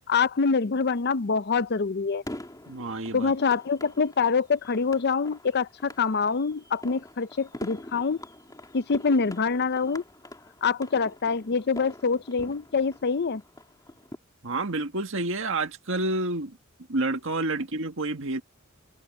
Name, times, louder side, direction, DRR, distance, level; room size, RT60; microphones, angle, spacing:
voice 1, 0.1-2.2 3.1-8.2 8.7-10.0 10.6-13.4, left 5 dB, 50° left, 0.6 m, -25 dB
sound 1, 2.2-14.2, left 1 dB, 20° left, 3.1 m, -45 dB
voice 2, 2.7-3.3 14.4-16.6 16.9-18.4, right 2 dB, 65° right, 1.9 m, -29 dB
open air
head